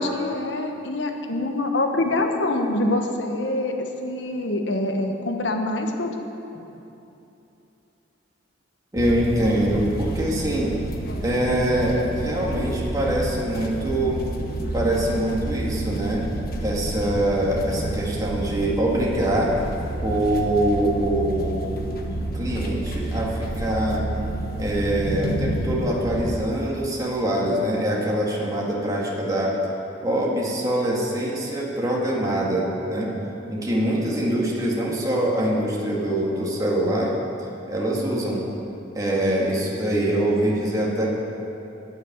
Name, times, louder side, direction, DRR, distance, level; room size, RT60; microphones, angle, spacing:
voice 1, 0.0-6.1, left 2 dB, 70° left, 4 dB, 1.3 m, -25 dB
voice 2, 8.9-10.7 11.2-14.2 14.7-16.3 16.6-19.5 20.0-21.6 22.3-24.1 24.6-29.6 30.0-33.1 33.5-37.1 37.7-38.5 38.9-41.1, right 1 dB, 20° right, -4 dB, 2.0 m, -24 dB
sound 1, 9.0-26.4, right 1 dB, 55° left, 1.2 m, -29 dB
12.5 x 6.7 x 9.6 m, 2.9 s
head